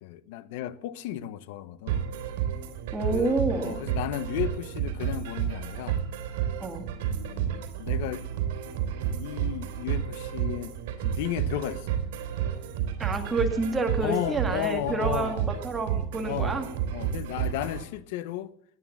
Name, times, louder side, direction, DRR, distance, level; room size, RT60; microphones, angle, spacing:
voice 1, 0.0-2.1 3.1-6.1 7.1-8.3 9.1-12.0 14.0-15.5 16.2-18.5, left 12 dB, 65° left, 0.9 m, -34 dB
sound 1, 1.9-17.8, right 9 dB, 85° right, 3.1 m, -31 dB
voice 2, 2.9-3.7 6.6-6.9 13.0-16.7, right 3 dB, 10° right, 1.8 m, -29 dB
18.5 x 9.8 x 7.1 m
supercardioid pair, 170°, 0 cm